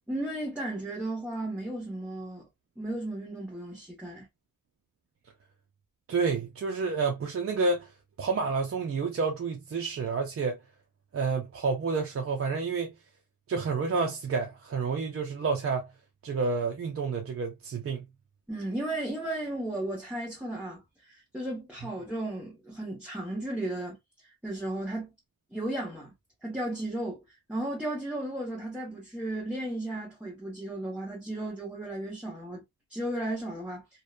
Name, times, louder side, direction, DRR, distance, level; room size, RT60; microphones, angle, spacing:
voice 1, 0.1-2.4 2.8-4.3 18.5-24.0 24.4-25.1 25.5-26.1 26.4-27.2 27.5-32.6 32.9-33.8, right 1 dB, 5° right, 1.0 m, -34 dB
voice 2, 6.1-7.9 8.2-10.6 11.1-12.9 13.5-15.9 16.2-18.0, right 4 dB, 40° right, 0.5 m, -29 dB
2.7 x 2.2 x 2.3 m
cardioid pair, 90°, 34 cm